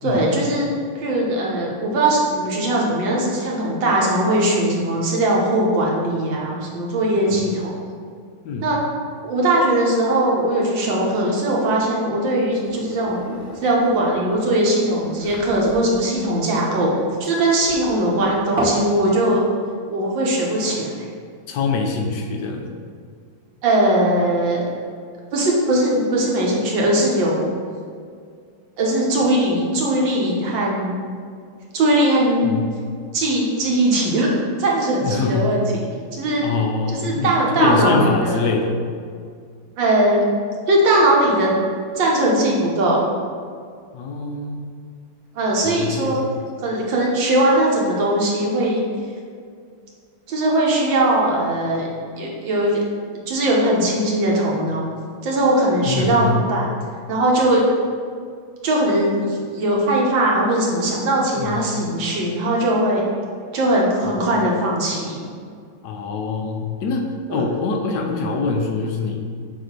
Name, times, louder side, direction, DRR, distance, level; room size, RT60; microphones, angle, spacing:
voice 1, 0.0-0.7 1.0-7.7 8.6-8.8 9.2-13.2 13.6-16.9 17.2-19.4 19.9-21.1 23.6-24.6 25.3-27.5 28.8-31.0 31.7-32.5 33.1-34.3 34.6-35.6 36.1-36.4 37.0-38.4 39.8-40.3 40.7-41.5 42.0-43.1 45.3-46.2 46.6-48.8 50.3-51.9 52.2-52.8 53.3-54.8 55.2-56.7 57.1-57.7 58.6-63.1 63.5-65.3 67.3-67.4, right 1 dB, 80° right, -3 dB, 1.8 m, -20 dB
voice 2, 7.2-7.5 8.4-8.7 21.5-22.8 32.4-32.7 35.0-35.5 36.4-38.9 43.9-44.6 45.6-46.3 55.8-56.5 61.4-61.6 64.2-64.3 65.8-69.3, left 4 dB, 70° left, 3 dB, 1.1 m, -24 dB
sound 1, 12.4-18.9, right 1 dB, 40° right, 1.1 m, -33 dB
7.5 x 2.7 x 5.1 m, 2.1 s
omnidirectional pair, 2.0 m